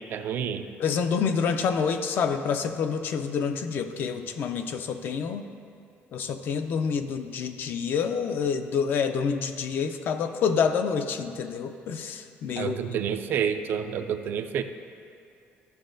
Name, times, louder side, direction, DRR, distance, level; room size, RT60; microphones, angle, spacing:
voice 1, 0.0-0.6 12.6-14.6, right 8 dB, 50° right, 9 dB, 0.3 m, -29 dB
voice 2, 0.8-5.4 6.1-12.8, left 6 dB, 50° left, 8 dB, 0.4 m, -27 dB
13.0 x 6.2 x 2.6 m, 2.5 s
cardioid pair, 180°, 5 cm